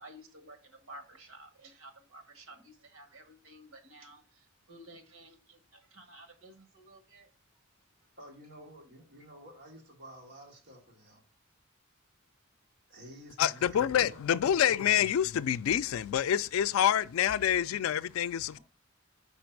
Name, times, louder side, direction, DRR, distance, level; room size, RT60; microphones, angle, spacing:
voice 1, 0.0-7.3 9.2-9.3, right 1 dB, 85° right, 1.5 m, -53 dB
voice 2, 8.2-11.2 12.9-13.8 14.1-14.6, right 1 dB, 55° right, 1.8 m, -51 dB
voice 3, 13.4-18.6, left 9 dB, 85° left, 0.3 m, -27 dB
5.5 x 5.1 x 4.6 m
head